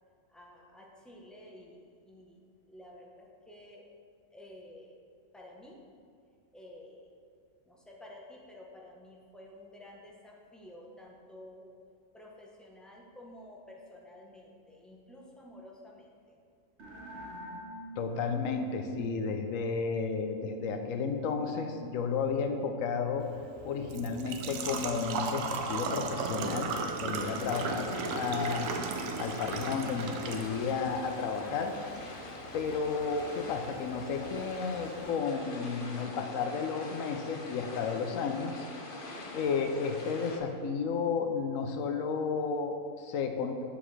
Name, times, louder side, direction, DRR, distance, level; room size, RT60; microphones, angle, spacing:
voice 1, 0.3-2.4 2.7-3.8 4.3-4.9 5.3-5.8 6.5-7.1 7.7-11.7 12.1-16.1, left 1 dB, ahead, -2 dB, 0.6 m, -51 dB
sound 1, 16.8-23.2, right 4 dB, 60° right, 1.2 m, -46 dB
voice 2, 18.0-23.3 23.6-26.7 27.0-28.7 29.2-31.7 32.5-38.6 39.3-43.7, left 5 dB, 80° left, 6 dB, 1.0 m, -32 dB
Engine / Trickle dribble / Fill (with liquid), 23.2-35.2, right 5 dB, 80° right, 1.0 m, -37 dB
sound 2, 27.2-40.4, left 2 dB, 45° left, 0.9 m, -44 dB
7.2 x 6.6 x 3.2 m, 2.3 s
omnidirectional pair, 1.4 m